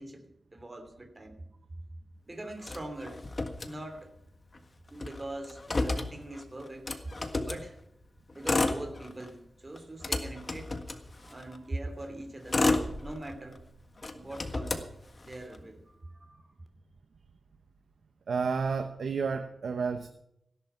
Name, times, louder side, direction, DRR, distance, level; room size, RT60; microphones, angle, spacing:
voice 1, 0.0-1.4 2.3-3.2 3.6-4.1 4.9-6.9 7.4-7.8 8.3-10.7 11.3-12.6 13.0-13.6 14.1-14.8 15.2-16.5, right 1 dB, 25° right, 6 dB, 2.8 m, -42 dB
Motor vehicle (road), 2.6-4.2 4.5-4.6 4.9-7.7 8.3-9.4 9.8-11.6 12.2-13.6 14.0-15.6, left 2 dB, 35° left, 1.5 m, -32 dB
sound 1, 12.8-14.4, right 1 dB, 45° right, 4.5 m, -48 dB
voice 2, 18.3-20.1, right 5 dB, 85° right, 7 dB, 1.0 m, -31 dB
16.5 x 11.5 x 5.8 m, 0.77 s
wide cardioid pair, 100°, 0 cm